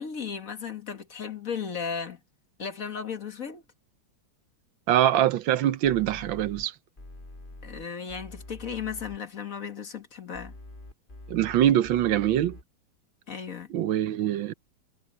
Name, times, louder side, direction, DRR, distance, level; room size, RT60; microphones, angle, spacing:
voice 1, 0.0-2.2 2.6-3.6 7.6-10.5 13.3-13.7, left 6 dB, 45° left, 1.9 m, -35 dB
voice 2, 4.9-6.7 11.3-12.6 13.7-14.5, right 11 dB, 80° right, 1.5 m, -23 dB
sound 1, 5.8-6.7 7.0-9.2 10.3-12.6, left 2 dB, 25° left, 2.8 m, -45 dB
omnidirectional pair, 2.1 m